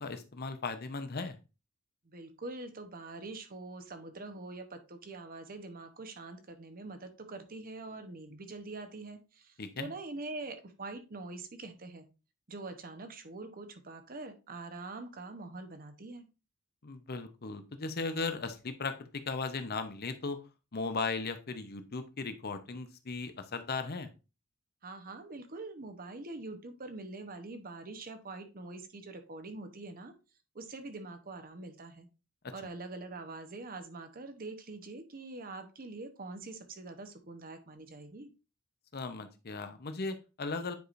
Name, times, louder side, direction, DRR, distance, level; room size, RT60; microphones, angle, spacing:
voice 1, 0.0-1.4 9.6-9.9 16.8-20.4 20.7-24.1 32.4-32.5 38.9-40.7, left 4 dB, 45° left, 9 dB, 0.8 m, -37 dB
voice 2, 2.0-12.0 12.5-16.3 24.8-30.1 30.5-32.1 32.5-38.3, right 2 dB, 40° right, 8 dB, 0.9 m, -44 dB
9.3 x 4.9 x 2.5 m, 0.30 s
head